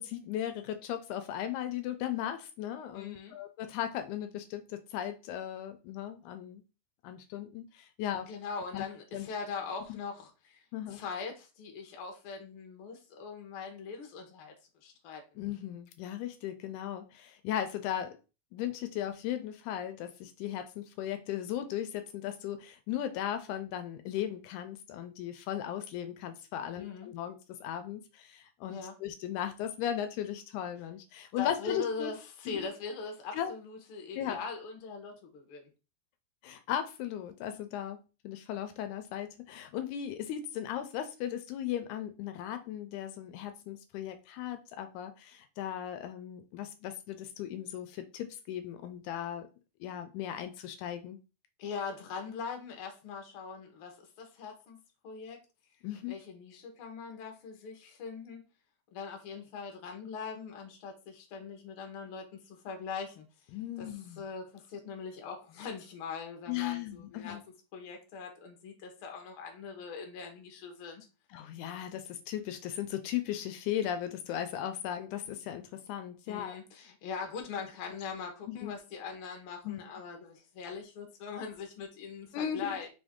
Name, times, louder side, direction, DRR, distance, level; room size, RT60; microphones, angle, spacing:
voice 1, 0.0-6.6 7.0-8.3 8.7-8.8 9.1-9.3 9.9-10.0 10.7-11.0 15.4-18.2 18.5-32.1 32.5-32.7 33.3-33.5 34.2-34.4 36.4-38.0 38.2-49.5 49.8-51.2 55.8-56.2 63.5-64.2 66.5-67.4 71.3-76.6 78.5-78.7 79.7-79.8 82.3-82.8, left 10 dB, 80° left, 8 dB, 1.9 m, -37 dB
voice 2, 2.9-3.3 8.3-14.5 14.8-15.2 26.8-27.1 28.7-28.9 31.4-35.7 51.6-55.4 56.1-58.4 58.9-63.3 63.8-67.4 67.7-71.1 76.3-82.9, left 5 dB, 60° left, 3 dB, 1.4 m, -41 dB
5.2 x 2.6 x 3.5 m, 0.31 s
omnidirectional pair, 3.6 m